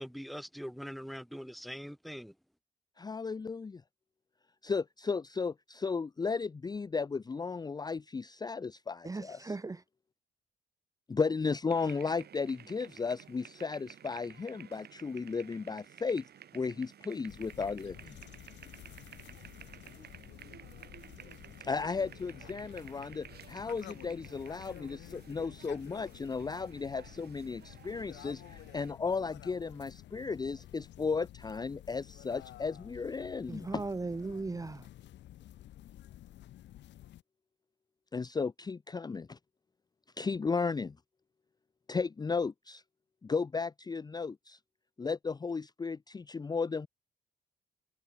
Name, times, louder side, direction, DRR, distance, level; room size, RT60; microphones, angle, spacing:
voice 1, 0.0-2.3, equal, ahead, 1.6 m, -42 dB
voice 2, 3.0-3.8 4.6-9.4 11.1-16.2 16.5-18.2 21.6-33.8 38.1-39.4 40.2-41.0 41.9-42.8 43.2-44.6 45.0-46.9, left 4 dB, 20° left, 0.6 m, -35 dB
voice 3, 9.0-9.8 33.5-34.9, right 3 dB, 20° right, 0.9 m, -37 dB
sound 1, 11.7-28.9, right 9 dB, 65° right, 2.4 m, -54 dB
sound 2, 17.3-37.2, left 13 dB, 90° left, 2.9 m, -51 dB
cardioid pair, 100°, 18 cm